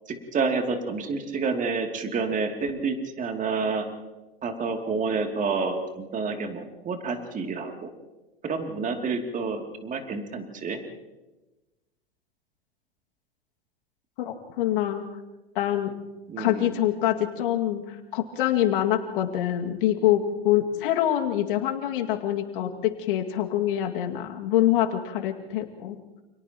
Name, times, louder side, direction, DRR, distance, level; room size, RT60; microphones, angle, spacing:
voice 1, 0.1-3.9 4.4-7.9 8.4-10.8 16.3-16.7, right 4 dB, 25° right, 3 dB, 2.9 m, -29 dB
voice 2, 14.2-15.0 15.6-15.9 16.4-26.0, left 12 dB, 60° left, 3 dB, 2.3 m, -25 dB
29.5 x 28.5 x 3.0 m, 1.1 s
hypercardioid pair, 95°, 30 cm